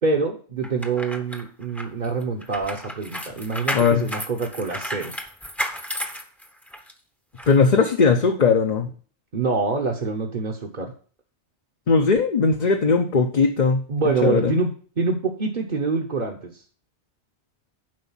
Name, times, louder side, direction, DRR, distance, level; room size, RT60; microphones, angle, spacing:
voice 1, 0.0-5.1 9.3-10.9 13.9-14.7 15.0-16.6, right 4 dB, 45° right, -1 dB, 1.1 m, -25 dB
sound 1, 0.6-6.9 7.4-7.5, equal, ahead, 0.8 m, -33 dB
voice 2, 3.7-4.1 7.5-8.9 11.9-13.8 14.2-14.5, left 5 dB, 45° left, 3 dB, 0.8 m, -19 dB
7.7 x 5.0 x 7.2 m, 0.43 s
omnidirectional pair, 1.2 m